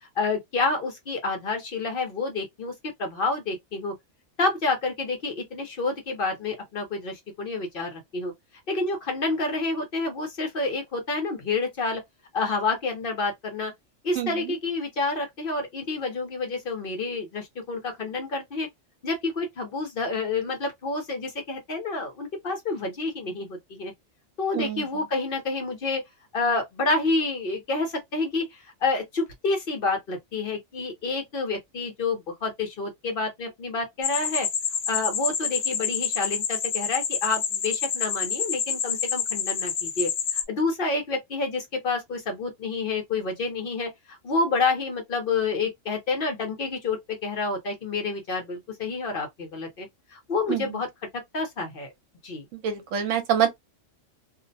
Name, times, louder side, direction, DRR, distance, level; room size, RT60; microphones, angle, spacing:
voice 1, 0.2-2.7 3.0-3.9 4.4-8.3 8.7-12.0 12.3-13.7 14.0-18.7 19.0-23.9 24.4-26.0 26.3-34.5 34.9-50.9 51.1-51.9 52.2-52.4, left 3 dB, 55° left, 0.8 m, -28 dB
voice 2, 24.5-24.8 50.5-50.7 52.5-53.5, right 9 dB, 75° right, 1.1 m, -25 dB
sound 1, 34.0-40.4, left 7 dB, 80° left, 1.0 m, -28 dB
2.5 x 2.0 x 2.6 m
omnidirectional pair, 1.3 m